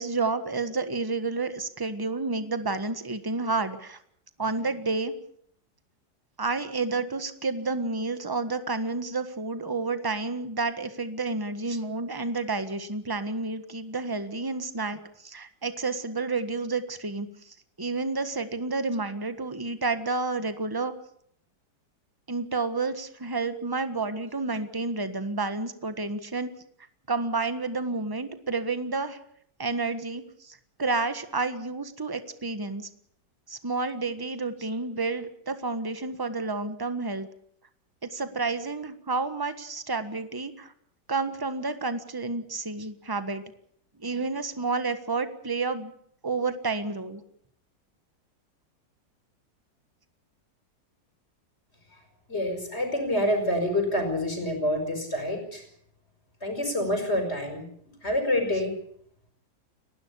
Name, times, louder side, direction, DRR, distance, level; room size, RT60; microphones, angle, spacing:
voice 1, 0.0-4.0 4.4-5.1 6.4-20.9 22.3-26.5 27.1-29.2 29.6-32.9 33.5-37.3 38.0-40.7 41.1-43.4 44.0-45.9 46.2-47.2, right 3 dB, 15° right, 10 dB, 1.4 m, -30 dB
voice 2, 52.3-55.6 56.4-58.7, left 1 dB, 35° left, 5 dB, 5.5 m, -27 dB
30.0 x 12.0 x 8.4 m, 0.67 s
omnidirectional pair, 1.9 m